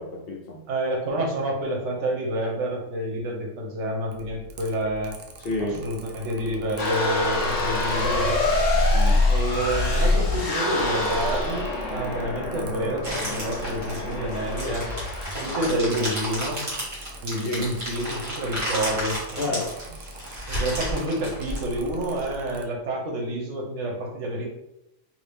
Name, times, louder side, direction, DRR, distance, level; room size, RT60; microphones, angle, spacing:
voice 1, 0.0-0.6 5.4-5.8 8.9-9.2 17.4-17.7 19.4-19.9, left 2 dB, 60° left, 0 dB, 0.7 m, -30 dB
voice 2, 0.7-5.1 5.8-8.4 9.3-14.9 15.4-16.6 17.2-19.6 20.5-24.6, right 1 dB, 70° right, 0 dB, 1.1 m, -28 dB
Mechanical fan, 4.1-22.6, right 1 dB, 90° right, 0.3 m, -44 dB
sound 1, 6.8-15.6, left 2 dB, 75° left, 1.1 m, -25 dB
sound 2, 13.0-22.2, equal, 40° right, 1.5 m, -32 dB
2.8 x 2.7 x 3.3 m, 0.86 s
omnidirectional pair, 1.3 m